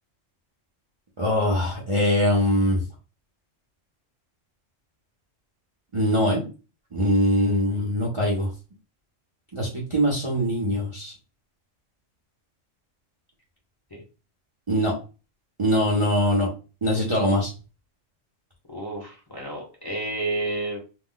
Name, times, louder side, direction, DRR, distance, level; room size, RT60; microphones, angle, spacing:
voice 1, 1.2-2.8 5.9-6.4 6.9-8.5 9.5-11.1 14.7-14.9 15.6-16.5 16.8-17.5, equal, 35° right, -5 dB, 0.6 m, -22 dB
voice 2, 18.7-20.8, right 2 dB, 20° left, -3 dB, 0.8 m, -30 dB
2.5 x 2.1 x 3.7 m, 0.33 s
omnidirectional pair, 1.3 m